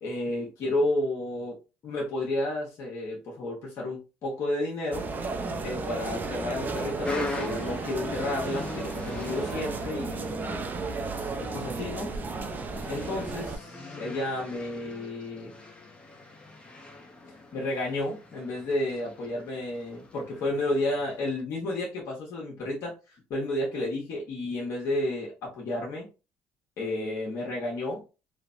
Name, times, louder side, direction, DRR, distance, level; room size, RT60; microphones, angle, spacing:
voice 1, 0.0-1.6 1.8-5.1 5.6-10.7 11.4-12.1 12.9-13.5 13.8-15.5 17.5-22.9 23.3-26.1 26.8-28.0, left 1 dB, 60° left, -3 dB, 1.0 m, -31 dB
sound 1, 4.9-13.6, right 4 dB, 35° right, 0.5 m, -34 dB
sound 2, 7.0-21.4, left 2 dB, 20° left, 0.7 m, -41 dB
3.2 x 2.0 x 2.5 m, 0.31 s
supercardioid pair, 75°, 5 cm